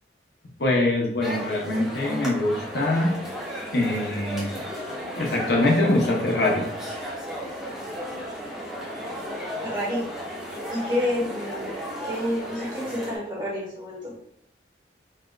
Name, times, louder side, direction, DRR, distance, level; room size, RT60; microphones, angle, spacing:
voice 1, 0.6-3.2 3.7-4.5 5.1-6.7, left 2 dB, 65° left, -2 dB, 0.7 m, -23 dB
sound 1, 1.2-13.2, equal, 5° right, 0.8 m, -34 dB
voice 2, 9.6-10.1 10.7-11.7 12.0-14.1, left 1 dB, 25° right, -7 dB, 1.3 m, -29 dB
4.1 x 2.4 x 2.2 m, 0.73 s
head